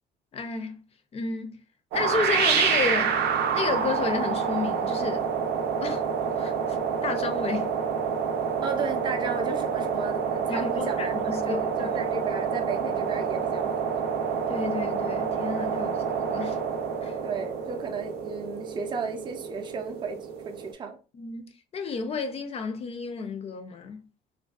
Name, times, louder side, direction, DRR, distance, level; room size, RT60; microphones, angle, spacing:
voice 1, 0.3-1.6 1.9-3.2 3.5-5.3 5.8-7.8 10.5-11.9 14.5-16.6 17.0-17.2 21.1-24.1, left 5 dB, 35° left, 0.4 m, -32 dB
sound 1, 1.9-20.7, right 6 dB, 80° right, 0.5 m, -28 dB
voice 2, 8.6-11.1 11.5-14.0 15.7-16.0 17.2-21.0, right 4 dB, 25° right, 0.4 m, -34 dB
2.5 x 2.3 x 2.3 m
cardioid pair, 110°, 17 cm